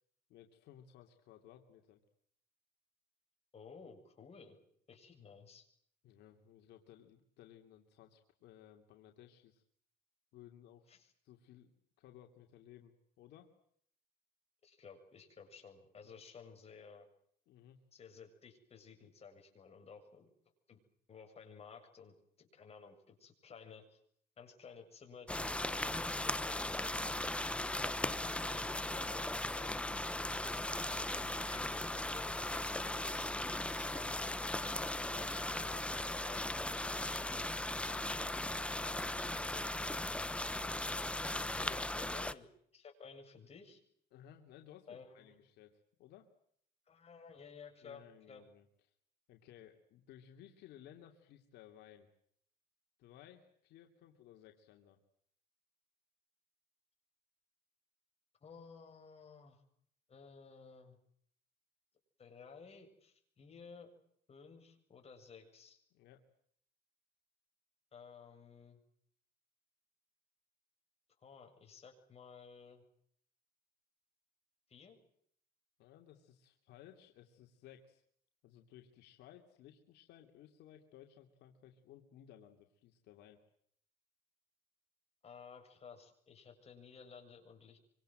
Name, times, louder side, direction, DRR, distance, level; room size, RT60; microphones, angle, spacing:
voice 1, 0.3-2.0 6.0-9.6 10.3-13.5 17.5-17.8 30.3-30.6 35.5-36.0 37.8-39.9 41.3-41.9 44.1-46.3 47.8-48.7 49.3-52.1 53.0-55.0 65.9-66.2 75.8-78.0 78.4-83.4, left 11 dB, 80° left, 3 dB, 2.9 m, -59 dB
voice 2, 3.5-4.6 4.9-5.6 10.9-11.1 14.6-17.1 17.9-20.3 20.7-20.8 21.1-24.0 24.4-27.3 27.8-30.4 30.9-35.3 36.1-36.5 37.1-37.8 41.9-43.8 44.9-45.4 46.9-48.4 58.4-59.6 60.1-61.0 62.2-63.9 64.3-65.8 67.9-68.8 71.2-72.8 74.7-75.0 85.2-87.8, left 5 dB, 35° left, 4 dB, 7.5 m, -55 dB
sound 1, 25.3-42.3, left 1 dB, 5° left, 1.0 m, -38 dB
26.0 x 25.5 x 7.9 m, 0.67 s
cardioid pair, 110°, 17 cm